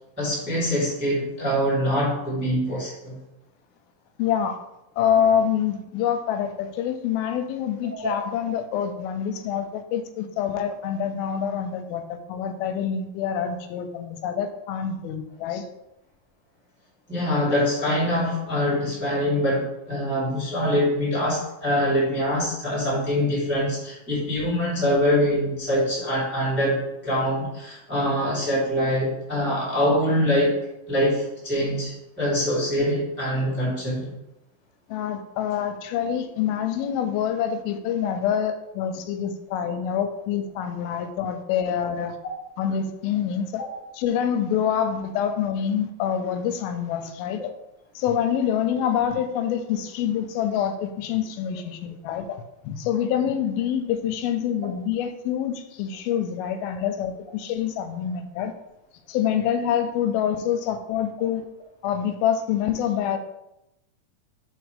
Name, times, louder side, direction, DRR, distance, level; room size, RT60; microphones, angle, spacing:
voice 1, 0.2-3.2 8.0-8.1 17.1-34.1 43.6-43.7, equal, 5° right, -7 dB, 1.2 m, -24 dB
voice 2, 4.2-4.6 5.0-15.6 34.9-42.2 42.6-43.6 44.0-47.4 48.0-52.4 52.6-58.5 59.1-61.5 61.8-63.2, left 8 dB, 85° left, 8 dB, 2.5 m, -26 dB
4.9 x 4.4 x 5.1 m, 0.88 s
omnidirectional pair, 4.2 m